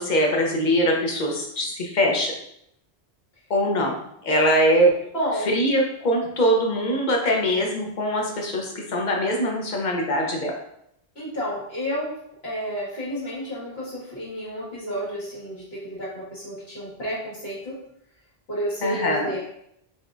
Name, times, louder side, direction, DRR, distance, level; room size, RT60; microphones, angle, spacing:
voice 1, 0.0-2.3 3.5-4.9 5.5-10.5 18.8-19.3, equal, 50° left, 0 dB, 1.0 m, -22 dB
voice 2, 5.1-5.5 8.7-8.8 11.2-12.2 12.4-17.8 18.5-19.4, equal, 75° left, -8 dB, 2.1 m, -31 dB
5.3 x 3.6 x 2.6 m, 0.74 s
omnidirectional pair, 1.1 m